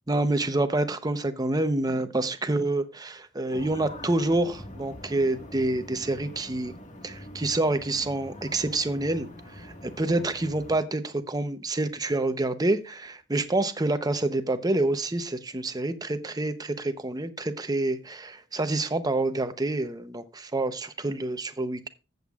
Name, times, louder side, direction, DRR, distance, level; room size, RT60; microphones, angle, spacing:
voice 1, 0.1-6.7 7.0-21.9, right 2 dB, 20° right, 0.8 m, -27 dB
sound 1, 3.5-10.8, left 1 dB, 40° left, 1.7 m, -44 dB
15.0 x 8.0 x 2.4 m
head